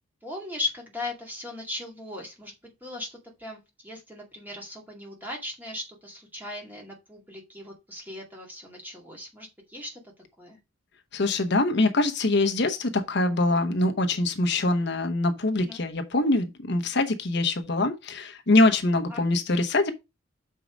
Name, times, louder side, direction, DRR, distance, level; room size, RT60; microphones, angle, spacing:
voice 1, 0.2-10.0 10.4-10.6 15.5-15.8 19.1-19.2, left 2 dB, 10° right, 2.2 m, -38 dB
voice 2, 11.1-19.9, left 2 dB, 60° left, 0.9 m, -24 dB
6.1 x 4.7 x 5.1 m
head